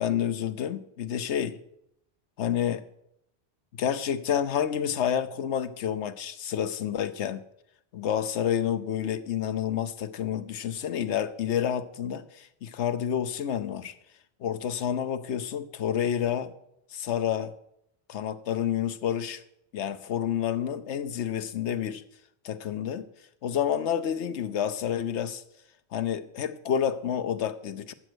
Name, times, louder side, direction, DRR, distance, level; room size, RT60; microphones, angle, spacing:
voice 1, 0.0-1.6 2.4-2.8 3.7-7.4 7.9-13.9 14.4-16.5 16.9-17.5 18.1-19.4 19.7-22.0 22.4-23.1 23.4-25.4 25.9-27.9, left 9 dB, 90° left, 12 dB, 1.1 m, -29 dB
12.5 x 7.8 x 6.3 m, 0.78 s
omnidirectional pair, 1.1 m